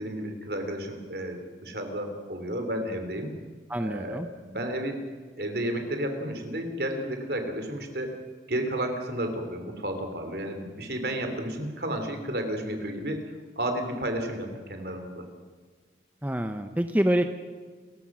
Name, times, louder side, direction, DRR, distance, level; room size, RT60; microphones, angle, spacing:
voice 1, 0.0-3.3 3.8-5.0 5.4-8.1 8.5-13.2 13.6-15.2, right 1 dB, 60° right, 5 dB, 3.3 m, -32 dB
voice 2, 3.7-4.3 16.2-17.3, right 1 dB, 10° right, 7 dB, 0.7 m, -26 dB
29.5 x 15.0 x 6.2 m, 1.5 s
head